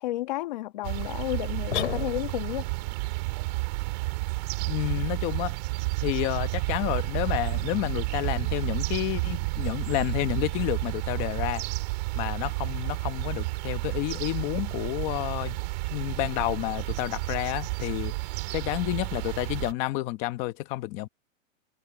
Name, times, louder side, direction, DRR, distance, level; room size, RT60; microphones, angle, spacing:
voice 1, 0.0-2.6, left 16 dB, 35° left, 1.4 m, -32 dB
sound 1, 0.8-19.7, right 25 dB, 30° right, 3.0 m, -31 dB
sound 2, 1.7-2.6, left 12 dB, 55° left, 4.7 m, -32 dB
voice 2, 4.7-5.6 6.0-11.6 12.1-15.6 15.9-18.1 18.5-21.1, left 18 dB, 15° left, 1.0 m, -30 dB
hypercardioid pair, 170°, 41 cm